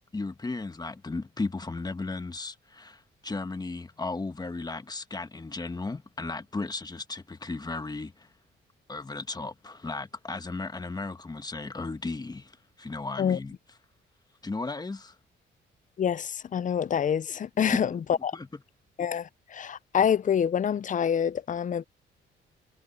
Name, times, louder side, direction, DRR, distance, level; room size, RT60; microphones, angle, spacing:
voice 1, 0.1-8.3 8.9-13.5 14.4-15.1 18.3-18.5, left 3 dB, 20° left, 1.3 m, -35 dB
voice 2, 16.0-18.4 19.0-21.8, left 8 dB, 40° left, 0.6 m, -27 dB
cardioid pair, 90°, 20 cm